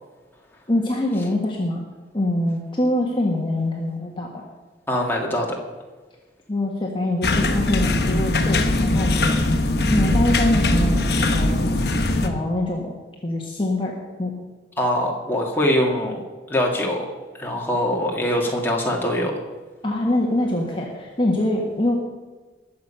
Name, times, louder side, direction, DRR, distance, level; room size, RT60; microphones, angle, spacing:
voice 1, 0.7-1.8 2.1-4.4 6.5-9.2 9.9-11.7 12.1-12.9 13.2-13.9 14.2-14.3 19.8-21.9, left 1 dB, 30° left, -1 dB, 1.5 m, -24 dB
voice 2, 4.9-5.6 14.8-16.2 16.5-17.1 17.4-19.3, left 1 dB, 10° left, -1 dB, 2.1 m, -23 dB
sound 1, 7.2-12.3, left 2 dB, 60° left, 1.3 m, -20 dB
20.0 x 7.1 x 5.8 m, 1.3 s
head